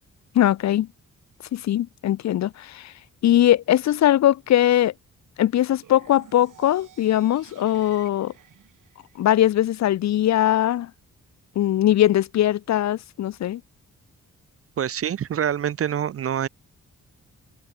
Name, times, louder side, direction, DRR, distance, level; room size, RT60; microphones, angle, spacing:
voice 1, 0.3-0.9 1.5-2.9 3.2-4.9 5.4-8.3 9.2-10.9 11.6-13.6, left 12 dB, 60° left, 0.5 m, -20 dB
sound 1, 5.8-9.8, right 9 dB, 80° right, 4.4 m, -51 dB
voice 2, 14.8-16.5, right 9 dB, 45° right, 0.5 m, -25 dB
open air
cardioid pair, 90°, 31 cm